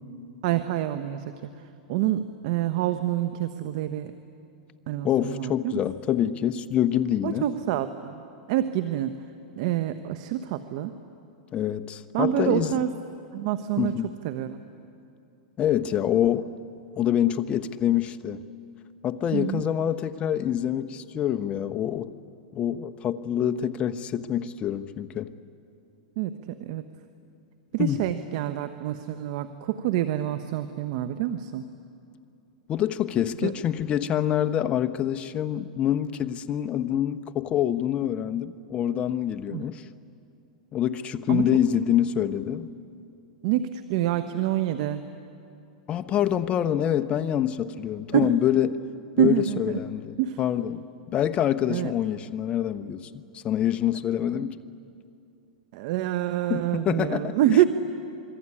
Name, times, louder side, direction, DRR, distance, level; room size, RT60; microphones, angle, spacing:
voice 1, 0.4-1.2 1.9-4.1 4.9-5.8 7.2-8.2 8.5-9.2 9.6-10.9 12.1-12.9 13.3-13.9 14.2-14.6 19.3-19.6 26.2-26.8 27.7-31.6 33.4-33.5 39.5-39.7 41.3-41.5 43.4-45.0 48.1-48.3 49.2-49.8 50.2-50.4 51.7-51.9 55.7-57.6, right 12 dB, 55° right, 10 dB, 1.1 m, -26 dB
voice 2, 5.0-7.4 11.5-12.8 13.8-14.1 15.6-16.5 16.9-18.4 19.0-22.1 22.5-25.3 27.8-28.0 32.7-39.8 40.7-42.7 45.9-48.8 49.2-54.6 56.5-57.4, left 10 dB, 30° left, 8 dB, 1.1 m, -26 dB
27.5 x 22.0 x 10.0 m, 2.7 s
hypercardioid pair, 130°, 4 cm